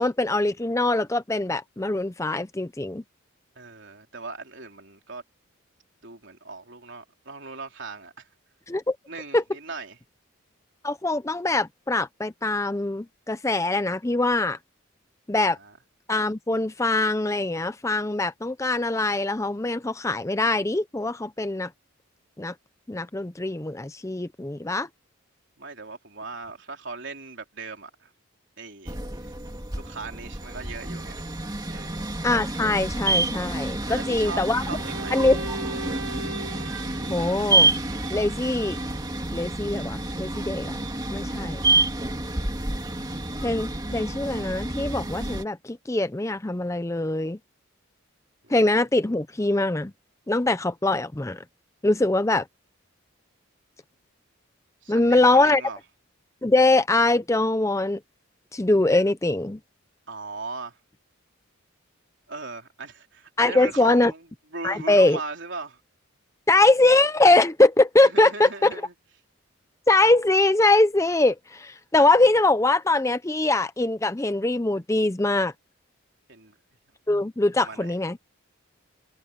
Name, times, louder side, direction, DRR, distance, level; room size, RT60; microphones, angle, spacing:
voice 1, 0.0-3.0 8.7-9.0 9.3-9.4 10.8-14.6 15.3-15.6 16.1-21.7 22.4-22.5 22.9-24.9 32.2-34.6 35.1-35.4 37.1-37.7 38.1-38.8 39.3-40.7 41.1-41.6 43.4-47.4 48.5-49.9 50.3-51.4 51.8-52.4 54.9-55.6 56.4-58.0 58.5-59.6 63.4-64.1 64.6-65.2 66.5-68.7 69.9-75.5 77.1-78.2, left 2 dB, 15° left, 0.5 m, -22 dB
voice 2, 3.6-5.2 6.0-8.3 9.1-10.0 15.4-15.8 25.6-28.1 28.6-29.3 29.7-31.2 31.6-32.1 33.9-35.2 41.4-41.9 48.4-48.5 54.8-55.8 60.1-60.8 62.3-64.3 64.5-65.8 68.0-68.9 76.3-76.5 77.6-78.0, right 3 dB, 60° right, 3.8 m, -38 dB
sound 1, 28.9-45.4, right 2 dB, 20° right, 2.3 m, -28 dB
Bowed string instrument, 34.6-39.1, right 3 dB, 80° right, 1.3 m, -38 dB
head